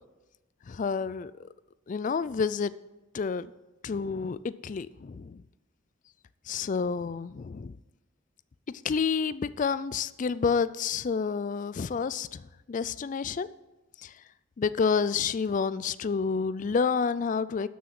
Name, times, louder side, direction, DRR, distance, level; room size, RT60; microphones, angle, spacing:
voice 1, 0.7-1.3 1.9-2.7 3.1-3.5 3.8-5.4 6.5-7.8 8.8-13.5 14.0-14.1 14.6-17.7, left 5 dB, 40° left, 0.3 m, -29 dB
12.5 x 6.3 x 6.0 m
head